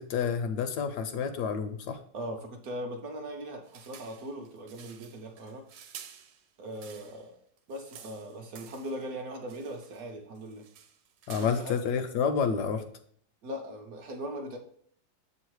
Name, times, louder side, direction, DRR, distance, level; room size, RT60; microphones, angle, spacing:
voice 1, 0.0-2.0 11.3-12.8, left 6 dB, 75° left, 8 dB, 1.0 m, -29 dB
voice 2, 2.1-5.7 6.6-7.3 7.7-10.6 11.3-11.8 13.4-14.6, equal, 65° right, 2 dB, 1.0 m, -39 dB
sound 1, 3.6-7.3 7.6-9.1 9.5-10.1 10.4-11.9, right 8 dB, 85° right, 1.3 m, -51 dB
7.3 x 3.2 x 4.6 m, 0.63 s
omnidirectional pair, 2.0 m